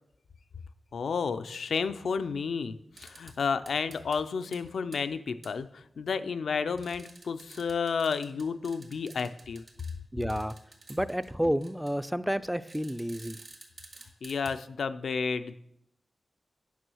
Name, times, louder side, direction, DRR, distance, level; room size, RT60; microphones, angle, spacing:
voice 1, 0.9-9.6 14.2-15.5, left 5 dB, 85° left, 11 dB, 0.5 m, -31 dB
sound 1, 3.0-3.3 3.7-4.2 4.5-4.6 4.9-5.0 5.4-5.5 6.8-9.9 10.3-11.3 11.6-11.9 12.7-14.5, right 3 dB, 60° right, 2.3 m, -51 dB
voice 2, 10.1-10.5 10.9-13.4, equal, 5° right, 14 dB, 0.4 m, -30 dB
9.3 x 6.1 x 6.3 m, 0.77 s
wide cardioid pair, 75°, 0 cm